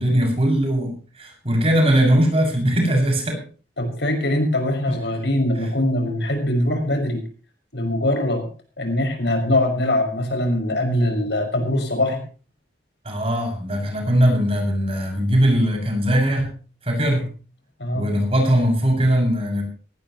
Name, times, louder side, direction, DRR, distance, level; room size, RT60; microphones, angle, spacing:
voice 1, 0.0-3.4 13.0-16.6 16.8-17.3 17.9-19.6, equal, 30° right, 2 dB, 6.7 m, -20 dB
voice 2, 3.8-7.2 7.7-8.4 8.8-12.2 17.8-18.0, left 1 dB, 75° left, 4 dB, 5.8 m, -22 dB
18.5 x 18.5 x 3.1 m, 0.38 s
head